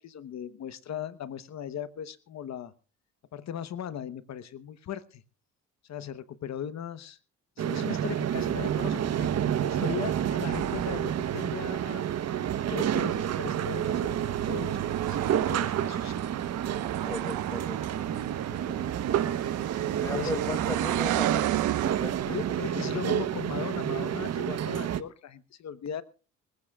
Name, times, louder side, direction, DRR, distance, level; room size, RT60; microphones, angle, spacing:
voice 1, 0.0-2.7 3.3-5.2 5.8-7.2 7.6-9.3 9.6-12.1 12.7-16.1 20.1-20.4 22.3-26.0, left 9 dB, 60° left, 14 dB, 1.1 m, -38 dB
sound 1, 7.6-25.0, right 10 dB, 55° right, 1.1 m, -30 dB
sound 2, 10.5-22.6, right 13 dB, 90° right, 1.2 m, -34 dB
voice 2, 17.0-18.8 20.0-21.4 21.9-22.6, left 2 dB, 10° left, 15 dB, 1.0 m, -38 dB
25.5 x 15.5 x 2.4 m, 0.35 s
cardioid pair, 90°, 30 cm